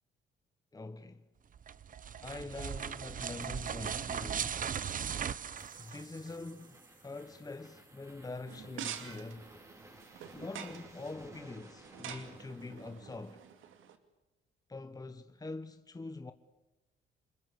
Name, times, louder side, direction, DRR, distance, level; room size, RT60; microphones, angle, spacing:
voice 1, 0.7-1.3 2.2-4.7 5.7-9.5 10.3-13.5 14.7-16.3, left 3 dB, 20° left, 1.2 m, -44 dB
sound 1, 1.5-6.5, right 8 dB, 45° right, 0.9 m, -38 dB
sound 2, 5.1-13.7, right 1 dB, 15° right, 4.3 m, -57 dB
sound 3, 8.5-14.0, right 9 dB, 80° right, 2.6 m, -47 dB
29.0 x 21.0 x 8.2 m
cardioid pair, 90°, 20 cm